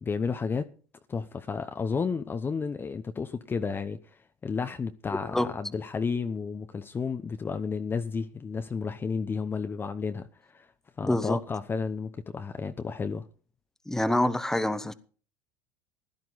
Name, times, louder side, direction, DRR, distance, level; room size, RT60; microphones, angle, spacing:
voice 1, 0.0-0.7 1.1-10.7 11.0-13.3, left 5 dB, 25° left, 0.9 m, -32 dB
voice 2, 11.0-11.4 13.9-14.9, left 1 dB, 5° left, 1.2 m, -26 dB
15.5 x 11.0 x 4.1 m
hypercardioid pair, 90°, 9 cm